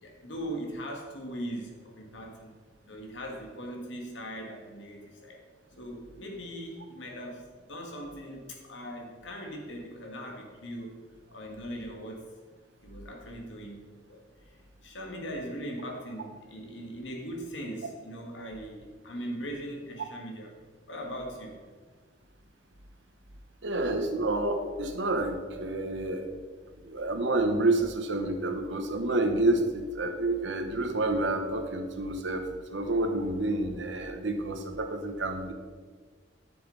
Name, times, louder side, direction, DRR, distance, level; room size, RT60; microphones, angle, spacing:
voice 1, 0.0-2.5 2.8-5.4 5.8-11.0 11.3-12.3 12.8-14.2 14.8-20.5 20.9-21.6, equal, 75° left, 1 dB, 1.8 m, -40 dB
voice 2, 23.6-26.3 26.9-32.4 32.7-35.5, right 2 dB, 75° right, 6 dB, 1.1 m, -29 dB
11.5 x 6.8 x 4.0 m, 1.5 s
head